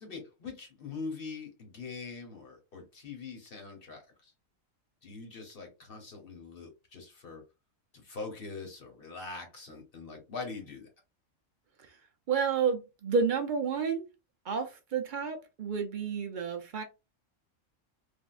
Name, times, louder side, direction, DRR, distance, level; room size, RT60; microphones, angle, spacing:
voice 1, 0.0-4.0 5.0-7.4 7.9-10.9, left 4 dB, 50° left, 1.1 m, -43 dB
voice 2, 12.3-14.1 14.5-16.8, right 6 dB, 70° right, 0.4 m, -30 dB
3.4 x 2.3 x 2.3 m
omnidirectional pair, 1.3 m